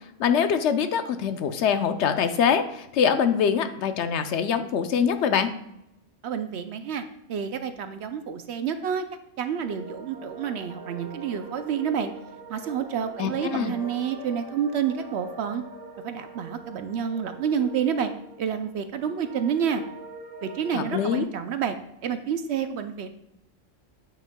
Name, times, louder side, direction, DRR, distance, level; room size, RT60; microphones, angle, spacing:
voice 1, 0.2-5.5 13.2-13.7 20.7-21.2, left 7 dB, 65° left, 9 dB, 0.8 m, -24 dB
voice 2, 6.2-7.0 7.3-9.1 9.4-12.1 12.5-15.6 16.0-18.1 18.4-19.8 20.4-21.8 22.0-23.1, right 7 dB, 65° right, 9 dB, 0.8 m, -29 dB
sound 1, 9.6-21.2, right 1 dB, 50° right, 1.7 m, -43 dB
9.1 x 6.1 x 2.2 m, 0.83 s
omnidirectional pair, 1.3 m